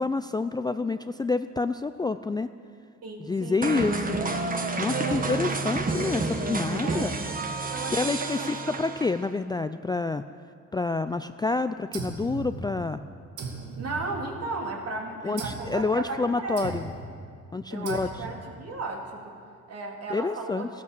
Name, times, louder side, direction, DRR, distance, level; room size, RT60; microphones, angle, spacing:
voice 1, 0.0-2.5 3.2-4.2 4.8-7.2 8.0-10.2 10.7-13.0 15.2-16.9 17.5-18.1 20.1-20.7, left 3 dB, 15° left, 10 dB, 0.4 m, -28 dB
voice 2, 3.0-3.7 4.8-5.2 6.8-7.1 7.7-8.5 13.8-16.8 17.7-19.3 19.7-20.6, right 3 dB, 55° right, 0 dB, 2.8 m, -35 dB
sound 1, 3.6-9.3, right 3 dB, 30° right, 1.3 m, -29 dB
sound 2, 11.9-13.0 13.4-14.7 15.4-15.8 16.6-17.1 17.9-18.5, right 3 dB, 80° right, 2.2 m, -38 dB
14.5 x 12.0 x 7.4 m, 2.2 s
cardioid pair, 90°, 30 cm